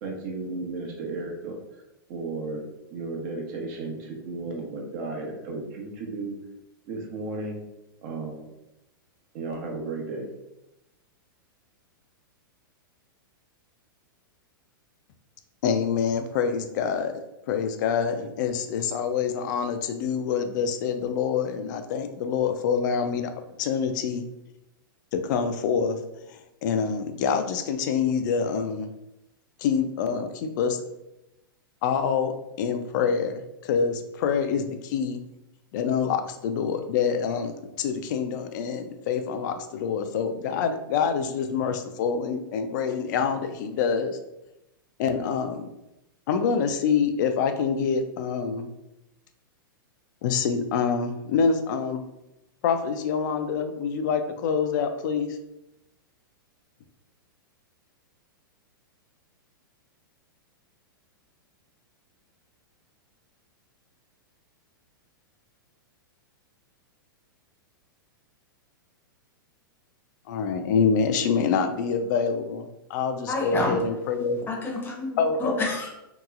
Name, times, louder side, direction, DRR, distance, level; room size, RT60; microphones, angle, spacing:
voice 1, 0.0-1.6 2.1-2.6 2.9-6.4 6.9-7.6 8.0-8.5 9.3-10.3, right 3 dB, 50° right, 1 dB, 0.8 m, -34 dB
voice 2, 15.6-17.1 17.5-23.3 23.6-24.2 25.1-26.0 26.3-28.9 29.6-30.8 31.8-35.2 35.7-37.5 37.8-44.2 45.0-45.7 46.3-48.7 50.2-52.0 52.6-55.4 70.3-74.4 75.2-75.7, left 6 dB, 55° left, 8 dB, 0.4 m, -26 dB
voice 3, 73.3-73.8 74.5-75.9, left 3 dB, 15° left, -2 dB, 0.7 m, -28 dB
2.9 x 2.9 x 2.4 m, 0.91 s
hypercardioid pair, 115°, 12 cm